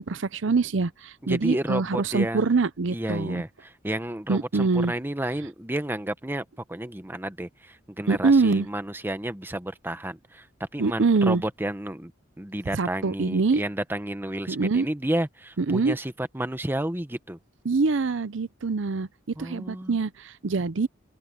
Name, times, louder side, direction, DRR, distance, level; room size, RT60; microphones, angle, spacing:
voice 1, 0.0-3.4 4.3-4.9 8.1-8.7 10.8-11.4 12.7-13.6 14.5-14.9 15.6-16.0 17.6-19.1 19.4-20.9, right 4 dB, 70° right, 0.6 m, -24 dB
voice 2, 1.3-2.5 2.9-12.1 12.4-17.4 19.4-20.0, right 1 dB, 10° right, 1.1 m, -31 dB
open air
head